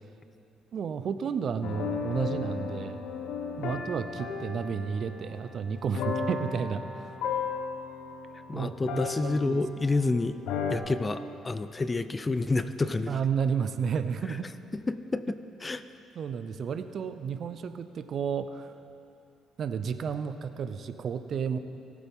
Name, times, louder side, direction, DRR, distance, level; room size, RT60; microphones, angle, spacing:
voice 1, 0.7-3.0 3.6-7.1 8.5-9.6 13.1-14.5 16.2-18.7 19.6-21.6, right 6 dB, 50° right, 10 dB, 0.6 m, -32 dB
sound 1, 1.6-10.1 10.4-10.8, left 5 dB, 80° left, 1.0 m, -35 dB
voice 2, 8.5-10.4 10.7-13.1 14.9-15.8, left 3 dB, 20° left, 13 dB, 0.4 m, -29 dB
20.0 x 8.6 x 3.6 m, 2.8 s
cardioid pair, 100°, 0 cm